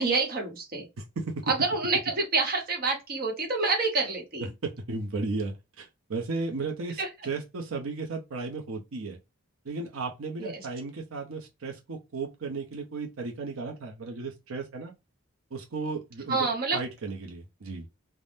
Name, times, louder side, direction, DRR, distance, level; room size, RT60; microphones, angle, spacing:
voice 1, 0.0-0.8 1.5-4.5 7.0-7.1 10.4-10.5 16.3-16.8, right 3 dB, 45° right, 0.8 m, -27 dB
voice 2, 1.0-1.5 4.6-9.2 9.6-14.9 15.5-17.9, right 3 dB, 80° right, 0.6 m, -35 dB
3.4 x 2.0 x 2.5 m
head